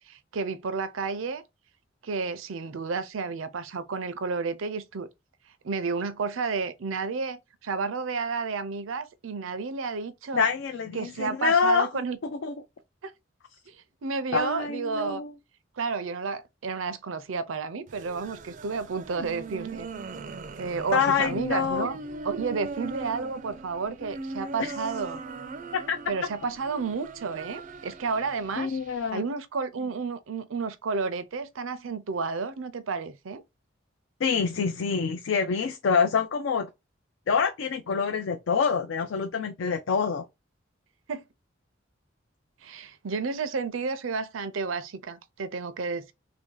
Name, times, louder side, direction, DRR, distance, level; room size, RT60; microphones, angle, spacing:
voice 1, 0.1-1.4 2.0-5.1 5.6-10.5 10.9-12.2 13.0-13.1 13.7-13.8 14.0-15.2 15.8-19.9 20.6-22.0 22.2-25.2 26.1-28.8 29.1-33.4 41.1-41.2 42.6-46.1, right 4 dB, 90° right, 0.5 m, -31 dB
voice 2, 10.3-11.9 12.4-12.5 14.3-15.3 20.9-21.9 24.6-24.7 25.9-26.0 28.6-29.2 34.2-36.7 37.3-40.3, left 5 dB, 75° left, 0.4 m, -26 dB
sound 1, 17.9-29.1, right 3 dB, 40° right, 0.4 m, -40 dB
3.1 x 2.6 x 3.7 m
head